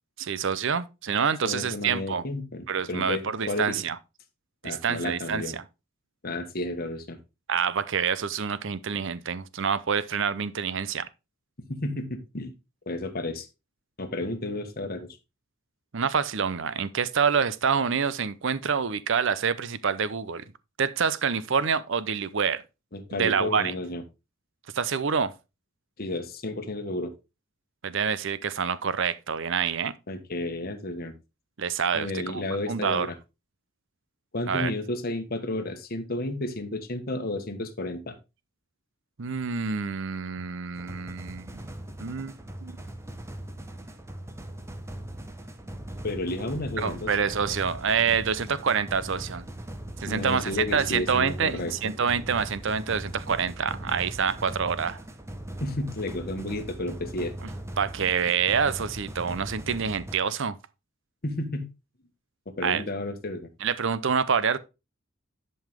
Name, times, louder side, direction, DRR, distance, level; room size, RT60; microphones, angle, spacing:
voice 1, 0.2-2.2 2.7-4.0 4.6-5.6 7.5-11.1 15.9-20.4 20.8-22.6 23.1-23.7 24.7-25.3 27.8-29.9 31.6-33.1 34.5-34.7 39.2-41.6 42.0-42.8 46.8-49.4 50.0-55.0 57.4-57.5 57.8-60.6 62.6-62.8 63.6-64.6, right 6 dB, 60° right, 0.7 m, -27 dB
voice 2, 1.4-3.8 4.6-5.5 6.2-7.2 11.7-12.5 12.9-13.5 14.0-15.1 22.9-24.0 26.0-27.1 30.1-31.1 31.9-33.1 34.3-38.2 46.0-47.1 50.1-51.7 55.6-57.3 61.2-61.7 62.6-63.5, left 2 dB, 45° left, 1.4 m, -32 dB
sound 1, 40.7-60.1, right 1 dB, 15° right, 0.9 m, -40 dB
10.5 x 5.6 x 3.5 m
head